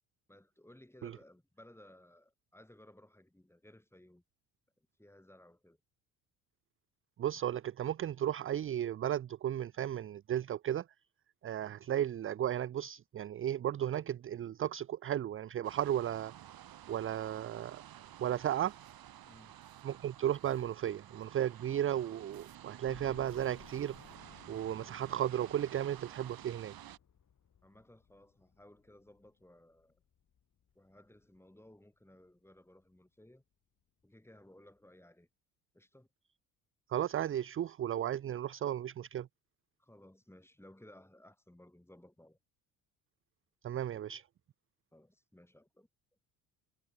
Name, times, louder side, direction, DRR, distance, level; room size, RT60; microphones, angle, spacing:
voice 1, 0.3-4.2 4.8-5.8 19.2-19.5 27.6-30.0 30.7-33.4 34.0-35.3 35.7-36.1 39.8-42.4 44.9-45.9, left 1 dB, 5° left, 7.7 m, -59 dB
voice 2, 7.2-10.8 11.4-16.3 16.9-17.8 18.2-18.7 19.8-24.0 24.5-26.7 36.9-39.3 43.6-44.2, right 11 dB, 30° right, 0.6 m, -34 dB
sound 1, 15.6-27.0, right 11 dB, 55° right, 3.4 m, -52 dB
sound 2, 22.9-31.8 32.2-32.3 32.7-32.8 34.0-34.1 34.4-34.5, left 8 dB, 40° left, 3.2 m, -61 dB
hypercardioid pair, 55°, 44 cm